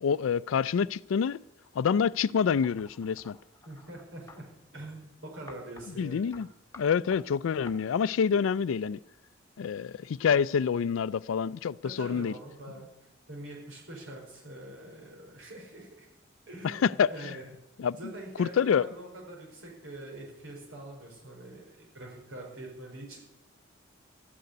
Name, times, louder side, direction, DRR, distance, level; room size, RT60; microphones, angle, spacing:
voice 1, 0.0-1.4 1.8-3.4 6.0-6.5 6.8-9.0 9.6-12.3 16.6-17.1 17.8-18.0 18.4-18.9, left 7 dB, 90° left, 0.4 m, -27 dB
sound 1, 2.6-4.4 5.5-5.9 6.3-6.5 6.7-7.2 7.7-7.8, left 3 dB, 15° left, 1.2 m, -51 dB
voice 2, 3.6-4.5 4.7-6.3 11.8-12.9 13.3-16.1 16.5-17.4 18.0-23.2, right 1 dB, 80° right, 4.8 m, -44 dB
13.5 x 6.7 x 9.6 m
head